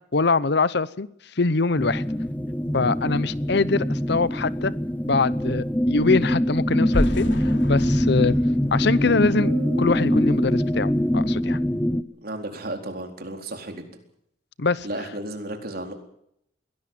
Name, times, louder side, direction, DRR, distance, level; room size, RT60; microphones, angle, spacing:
voice 1, 0.1-1.1 1.4-2.0 2.7-4.7 5.1-8.3 8.7-9.5 9.8-11.6 14.6-14.9, left 3 dB, 60° left, 0.8 m, -23 dB
sound 1, 1.8-12.0, equal, 10° left, 0.9 m, -23 dB
sound 2, 6.9-9.9, equal, 80° left, 3.1 m, -30 dB
sound 3, 9.4-11.9, right 4 dB, 75° right, 1.0 m, -39 dB
voice 2, 12.2-14.0 14.8-15.9, right 1 dB, 55° right, 4.2 m, -34 dB
22.5 x 17.5 x 7.5 m
head